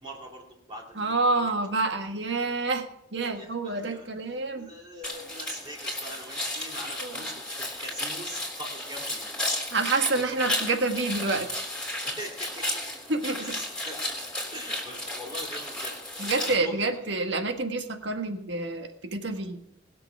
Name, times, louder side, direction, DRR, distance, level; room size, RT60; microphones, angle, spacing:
voice 1, 0.0-1.5 3.2-4.1 4.5-9.8 10.1-10.7 12.0-12.9 13.4-14.1 14.5-17.1, equal, 25° right, -4 dB, 2.3 m, -43 dB
voice 2, 1.0-4.7 7.0-7.1 9.7-11.6 13.1-13.5 16.2-19.6, right 3 dB, 65° right, 5 dB, 1.6 m, -28 dB
Squelching Footsteps, 5.0-16.5, left 1 dB, 5° left, 3.4 m, -33 dB
20.0 x 6.9 x 6.0 m, 0.81 s
head